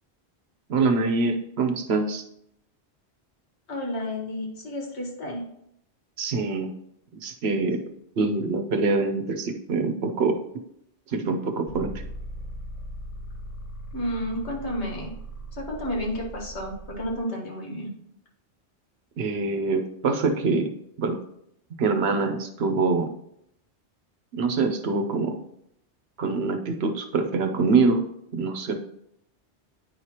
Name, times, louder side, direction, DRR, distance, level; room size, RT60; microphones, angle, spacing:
voice 1, 0.7-2.2 6.2-6.7 7.2-7.8 8.2-10.4 11.1-11.9 19.2-20.7 21.0-21.2 21.8-23.1 24.3-25.4 26.2-28.0 28.3-28.8, right 4 dB, 70° right, 6 dB, 1.0 m, -24 dB
voice 2, 3.7-5.5 13.9-15.1 15.5-17.9, left 1 dB, 75° left, 0 dB, 1.7 m, -31 dB
sound 1, 11.7-17.2, right 1 dB, 50° left, 0.4 m, -39 dB
9.5 x 4.8 x 2.9 m, 0.76 s
omnidirectional pair, 1.1 m